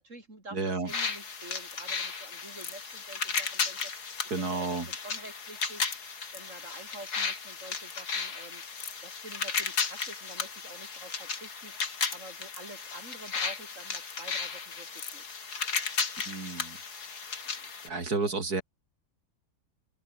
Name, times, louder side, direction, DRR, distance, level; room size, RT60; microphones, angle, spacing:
voice 1, 0.0-4.1 4.4-5.9 6.3-8.6 9.0-11.8 12.1-15.4, right 2 dB, 50° right, 5.9 m, -48 dB
voice 2, 0.5-0.9 4.3-4.9 16.3-16.8 17.8-18.6, right 3 dB, 70° right, 4.4 m, -31 dB
sound 1, 0.9-17.9, left 5 dB, 70° left, 2.9 m, -35 dB
open air
omnidirectional pair, 1.7 m